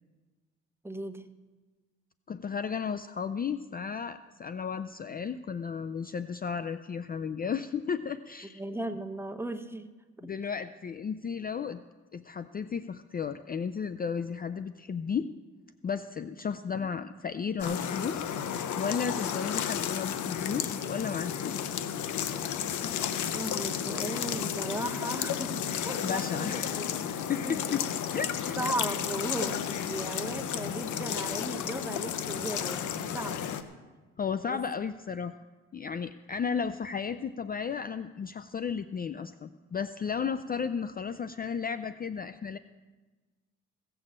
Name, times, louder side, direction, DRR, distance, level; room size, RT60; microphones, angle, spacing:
voice 1, 0.8-1.3 8.6-10.3 16.8-16.9 19.2-19.4 23.3-26.9 27.4-27.6 28.6-33.4 34.5-34.6, right 1 dB, 10° right, 7 dB, 0.9 m, -37 dB
voice 2, 2.3-8.6 10.2-11.8 12.1-15.3 15.8-18.3 18.8-21.7 26.0-26.6 27.3-27.8 28.1-28.6 34.2-35.3 35.7-42.6, left 6 dB, 30° left, 12 dB, 0.4 m, -34 dB
sound 1, 17.6-33.6, left 9 dB, 75° left, 0.9 m, -33 dB
16.5 x 6.8 x 7.4 m, 1.3 s
cardioid pair, 90°, 30 cm